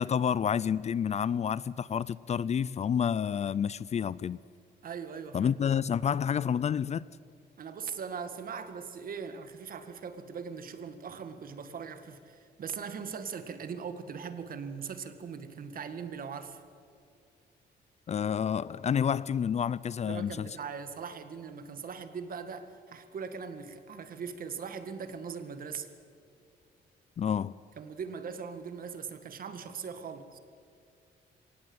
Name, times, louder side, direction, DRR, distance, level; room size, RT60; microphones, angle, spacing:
voice 1, 0.0-4.4 5.3-7.0 18.1-20.6 27.2-27.5, left 8 dB, 40° left, 0.4 m, -29 dB
voice 2, 4.8-5.5 7.6-16.6 20.1-25.9 27.8-30.4, right 6 dB, 55° right, 1.9 m, -40 dB
23.5 x 18.5 x 8.1 m
cardioid pair, 120°, 18 cm